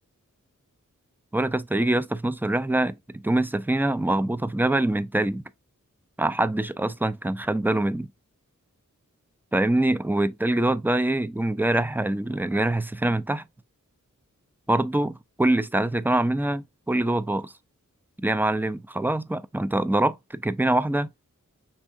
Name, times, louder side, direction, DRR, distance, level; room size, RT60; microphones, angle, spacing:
voice 1, 1.3-5.4 6.2-8.1 9.5-13.4 14.7-17.5 18.2-21.1, right 1 dB, 5° right, 0.4 m, -24 dB
5.3 x 3.6 x 2.5 m
wide cardioid pair, 45°, 32 cm